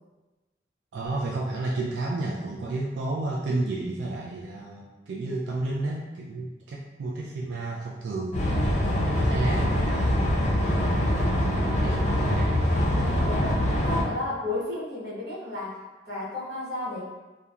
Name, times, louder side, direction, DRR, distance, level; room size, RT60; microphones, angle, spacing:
voice 1, 0.9-8.4 8.8-10.7 11.0-12.7, right 2 dB, 75° right, -3 dB, 0.3 m, -32 dB
sound 1, 8.3-14.0, left 1 dB, 40° left, 0.5 m, -24 dB
voice 2, 12.9-17.0, left 2 dB, 60° right, -10 dB, 1.1 m, -33 dB
2.8 x 2.1 x 2.3 m, 1.1 s
head